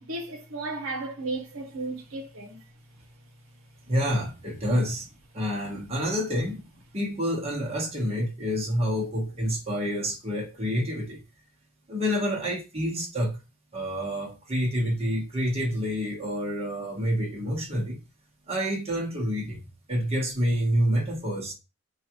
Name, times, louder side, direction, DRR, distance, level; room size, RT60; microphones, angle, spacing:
voice 1, 0.0-2.6, right 2 dB, 80° right, 0.9 m, -34 dB
voice 2, 3.9-5.1 5.3-6.6 6.9-11.2 11.9-13.4 13.7-18.0 18.5-19.6 19.9-21.5, equal, 30° right, 1.1 m, -28 dB
4.8 x 2.5 x 2.9 m
head